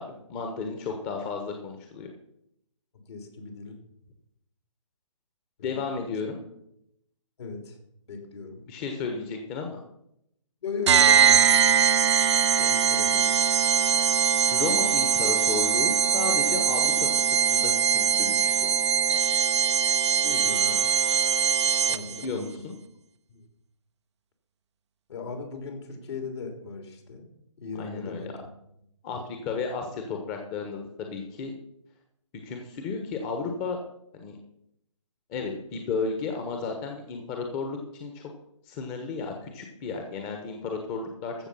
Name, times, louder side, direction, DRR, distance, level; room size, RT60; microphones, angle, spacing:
voice 1, 0.0-2.1 5.6-6.4 8.7-9.8 14.5-17.1 17.4-18.8 22.1-22.8 27.8-28.2 29.0-31.5 32.4-33.8 34.1-34.4 35.3-38.2 38.6-41.3, left 4 dB, 25° left, 3 dB, 1.4 m, -33 dB
voice 2, 3.1-3.8 5.6-5.8 6.1-6.2 7.4-7.8 8.1-8.6 10.6-11.5 12.6-13.4 20.2-20.8 21.9-22.5 23.3-23.4 25.1-27.2 27.6-28.5 29.1-29.2, left 4 dB, 55° left, 4 dB, 3.3 m, -38 dB
sound 1, 10.9-22.2, right 8 dB, 60° right, 0.5 m, -22 dB
14.5 x 6.8 x 5.7 m, 0.78 s
hypercardioid pair, 145°, 16 cm